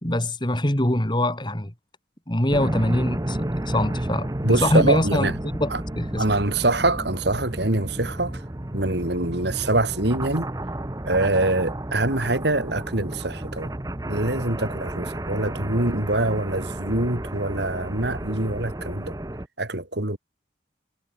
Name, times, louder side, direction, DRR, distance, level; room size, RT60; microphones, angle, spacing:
voice 1, 0.0-1.7 2.3-5.3 5.6-5.7 6.0-6.2, left 1 dB, 25° left, 2.7 m, -23 dB
sound 1, 2.5-19.5, right 1 dB, 20° right, 0.9 m, -32 dB
voice 2, 4.4-5.3 5.7-5.8 6.2-8.4 8.7-10.5 11.0-13.7 14.1-19.2 19.6-20.2, right 2 dB, 60° right, 2.9 m, -24 dB
head